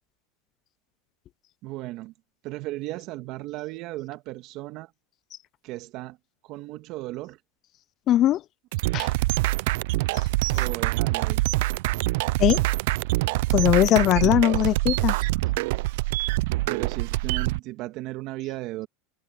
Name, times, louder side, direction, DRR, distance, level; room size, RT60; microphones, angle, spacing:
voice 1, 1.6-2.1 2.4-4.9 5.6-6.2 6.5-7.4 10.5-11.4 16.7-18.9, right 18 dB, 50° right, 2.0 m, -35 dB
voice 2, 8.1-8.4 8.9-9.1 12.4-12.6 13.5-15.1, left 13 dB, 40° left, 0.5 m, -20 dB
sound 1, 8.7-17.6, right 20 dB, 70° right, 0.5 m, -25 dB
supercardioid pair, 120°, 0 cm